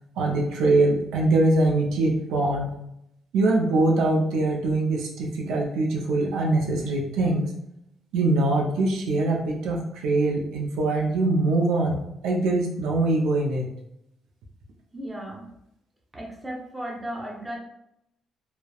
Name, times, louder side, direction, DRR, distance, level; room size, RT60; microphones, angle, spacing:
voice 1, 0.2-2.8 3.3-7.5 8.1-13.7, right 2 dB, 90° right, -1 dB, 0.5 m, -23 dB
voice 2, 14.9-15.5 16.1-17.6, right 1 dB, 15° right, -2 dB, 0.8 m, -35 dB
3.1 x 2.0 x 2.3 m, 0.79 s
cardioid pair, 90°, 0 cm